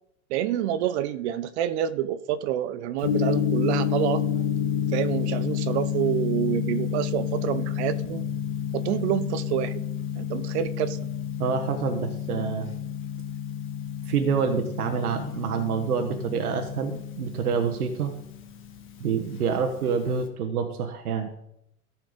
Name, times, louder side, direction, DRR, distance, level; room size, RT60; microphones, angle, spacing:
voice 1, 0.3-4.2 4.9-8.2 8.7-9.9 10.2-11.0, right 11 dB, 50° right, 13 dB, 0.6 m, -27 dB
Gong, 3.0-20.3, left 9 dB, 30° left, 1.5 m, -30 dB
voice 2, 11.4-12.7 14.1-18.1 19.0-21.3, right 6 dB, 85° right, 5 dB, 1.2 m, -27 dB
13.5 x 4.5 x 5.1 m, 0.79 s
hypercardioid pair, 110°, 43 cm